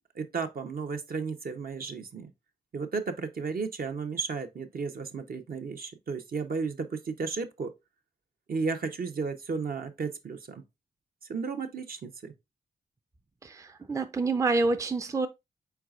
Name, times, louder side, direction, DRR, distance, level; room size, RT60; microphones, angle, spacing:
voice 1, 0.1-2.3 2.7-7.7 8.5-10.6 11.3-12.3, right 4 dB, 55° right, 0.7 m, -33 dB
voice 2, 13.4-15.3, right 3 dB, 15° right, 0.5 m, -27 dB
4.6 x 3.9 x 2.4 m
supercardioid pair, 45°, 18 cm